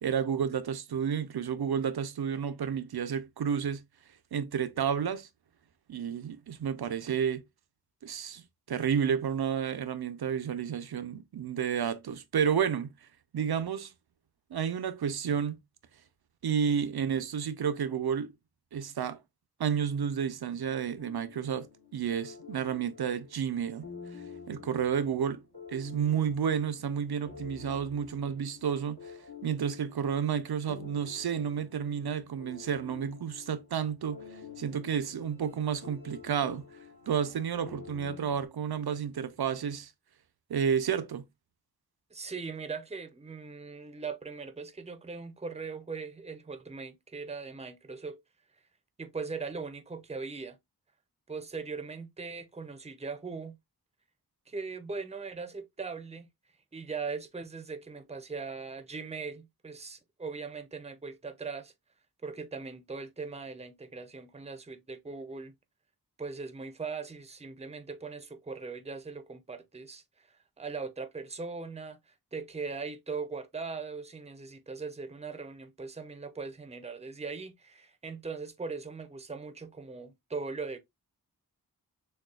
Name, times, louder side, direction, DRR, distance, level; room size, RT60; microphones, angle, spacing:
voice 1, 0.0-3.8 4.3-5.3 5.9-7.4 8.0-8.4 8.7-12.9 13.3-13.9 14.5-15.6 16.4-18.3 18.7-19.2 19.6-23.9 24.5-25.4 25.7-29.1 29.4-34.3 34.6-36.7 37.1-39.9 40.5-41.3, right 7 dB, 75° right, 0.6 m, -31 dB
sound 1, 21.0-38.5, left 6 dB, 70° left, 1.9 m, -49 dB
voice 2, 42.1-48.2 49.0-50.6 51.3-53.6 54.5-56.3 56.7-61.7 62.2-65.5 66.2-80.8, right 4 dB, 15° right, 0.6 m, -40 dB
6.5 x 2.3 x 2.3 m
wide cardioid pair, 90°, 39 cm